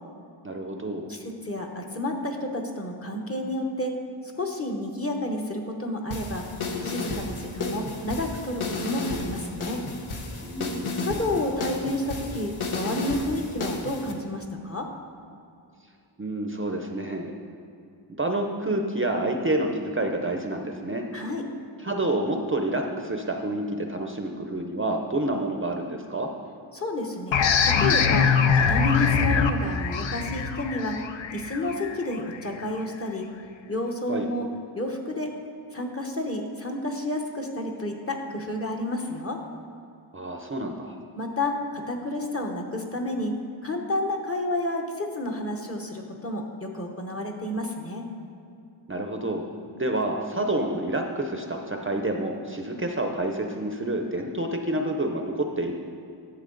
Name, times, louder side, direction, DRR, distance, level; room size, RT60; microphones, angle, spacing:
voice 1, 0.4-1.1 10.4-11.4 16.2-17.4 18.2-21.0 21.8-26.3 34.1-34.3 40.1-41.0 48.9-49.4 49.7-55.7, right 1 dB, 25° right, 3 dB, 0.6 m, -28 dB
voice 2, 1.1-3.9 4.4-6.5 6.8-9.8 11.0-14.9 21.1-21.4 26.7-28.3 28.5-30.9 31.3-33.3 33.7-34.5 34.7-35.3 35.7-39.4 41.1-43.3 43.6-48.1, left 1 dB, 30° left, 1 dB, 1.0 m, -30 dB
sound 1, 6.1-14.1, left 3 dB, 90° left, 1.0 m, -32 dB
sound 2, 27.3-32.6, left 6 dB, 70° left, 0.6 m, -23 dB
12.0 x 7.1 x 3.9 m, 2.6 s
wide cardioid pair, 100°, 48 cm